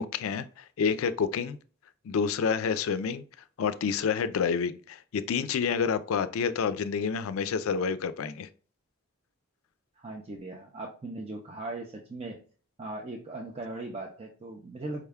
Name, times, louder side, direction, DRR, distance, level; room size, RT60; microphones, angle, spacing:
voice 1, 0.0-1.6 2.0-3.2 3.6-8.5, left 6 dB, 70° left, 0.4 m, -28 dB
voice 2, 10.0-12.4 12.8-15.1, right 2 dB, 25° right, 0.4 m, -39 dB
4.8 x 2.2 x 3.4 m
head